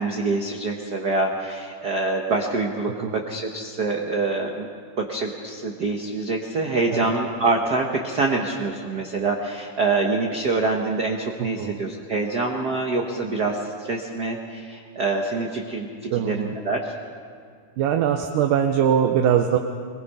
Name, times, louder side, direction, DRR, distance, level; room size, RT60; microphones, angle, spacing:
voice 1, 0.0-4.7 5.0-16.9, right 3 dB, 65° right, 1 dB, 1.0 m, -25 dB
voice 2, 16.1-16.5 17.8-19.6, right 9 dB, 85° right, 4 dB, 2.5 m, -21 dB
23.5 x 21.5 x 5.6 m, 2.2 s
omnidirectional pair, 3.8 m